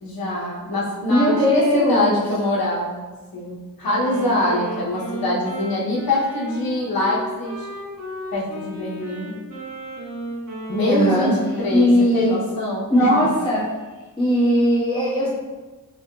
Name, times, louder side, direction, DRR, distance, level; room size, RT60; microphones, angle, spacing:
voice 1, 0.0-3.0 3.3-7.7 8.3-9.4 10.7-11.9 12.1-13.1, left 1 dB, 75° left, -5 dB, 0.9 m, -24 dB
voice 2, 1.1-2.2 10.8-11.3 11.7-12.4 12.9-13.6 14.2-15.3, equal, 15° left, -11 dB, 1.4 m, -18 dB
Wind instrument woodwind instrument, 3.8-12.0, equal, 60° right, 1.3 m, -34 dB
3.3 x 2.8 x 2.3 m, 1.2 s
wide cardioid pair, 110°, 35 cm